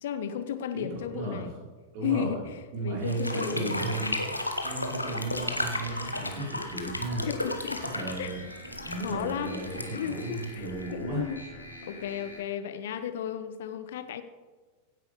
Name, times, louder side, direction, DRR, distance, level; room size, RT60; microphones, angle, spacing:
voice 1, 0.0-1.6 2.0-3.9 7.2-7.8 8.2-8.3 9.0-11.4 11.9-14.2, left 9 dB, 60° left, 11 dB, 0.7 m, -34 dB
voice 2, 0.7-1.5 1.9-2.4 2.7-4.3 4.6-7.3 7.9-8.4 8.8-11.2, right 2 dB, 45° right, -3 dB, 4.3 m, -34 dB
sound 1, 3.0-11.0, left 2 dB, 85° left, 1.1 m, -34 dB
sound 2, 5.2-12.4, left 1 dB, 90° right, 2.8 m, -46 dB
16.0 x 9.3 x 3.4 m, 1.3 s
figure-of-eight pair, 90°, 0 cm